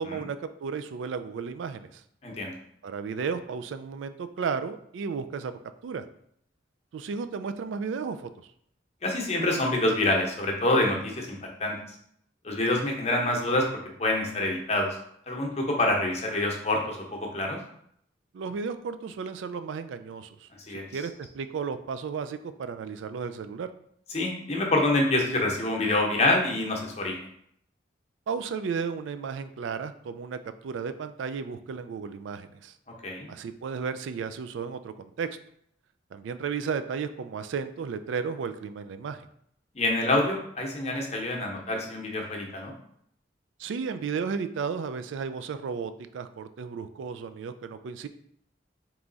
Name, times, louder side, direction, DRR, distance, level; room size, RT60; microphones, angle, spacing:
voice 1, 0.0-2.0 2.8-5.5 5.8-6.1 6.9-8.3 18.3-20.5 20.9-23.7 28.3-32.7 33.3-35.3 36.1-39.3 43.6-48.1, right 5 dB, 85° right, 11 dB, 0.3 m, -34 dB
voice 2, 2.2-2.5 9.0-11.8 12.4-13.7 14.0-14.9 15.3-17.6 20.7-20.8 24.1-27.1 33.0-33.3 39.7-42.7, left 2 dB, 35° left, 0 dB, 0.8 m, -26 dB
3.5 x 3.0 x 3.9 m, 0.69 s
head